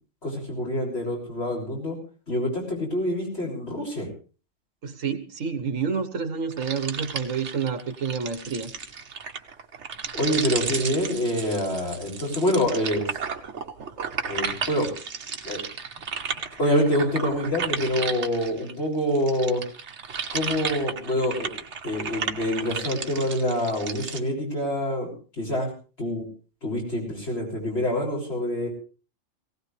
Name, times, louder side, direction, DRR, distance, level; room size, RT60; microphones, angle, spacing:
voice 1, 0.2-1.9 2.3-4.1 10.1-13.2 14.3-14.9 15.4-15.6 16.6-19.6 20.3-21.5 21.8-25.1 25.4-25.7 26.0-26.2 26.6-28.7, left 1 dB, 55° left, -2 dB, 6.7 m, -26 dB
voice 2, 4.8-8.7, right 6 dB, 80° right, 10 dB, 1.7 m, -29 dB
sound 1, 6.5-18.7 19.1-24.2, right 6 dB, 65° right, 1.4 m, -33 dB
19.0 x 18.0 x 3.3 m, 0.37 s
omnidirectional pair, 1.3 m